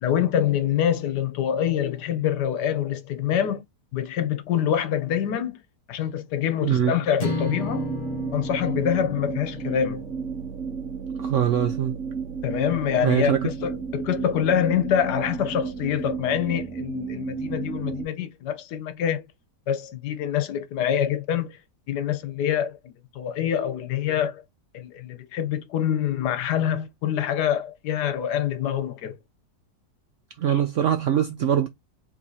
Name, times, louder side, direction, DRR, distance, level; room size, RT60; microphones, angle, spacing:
voice 1, 0.0-3.6 3.9-5.6 5.9-7.9 8.3-10.0 12.4-19.2 19.7-21.6 21.9-22.8 23.1-24.4 24.7-29.2, left 9 dB, 75° left, 1.4 m, -25 dB
voice 2, 6.6-6.9 11.2-12.0 13.0-13.5 30.4-31.7, right 9 dB, 75° right, 0.7 m, -22 dB
sound 1, 7.2-11.5, left 3 dB, 35° left, 0.8 m, -34 dB
sound 2, 7.6-18.0, right 6 dB, 50° right, 1.2 m, -33 dB
4.8 x 3.4 x 2.8 m
omnidirectional pair, 1.8 m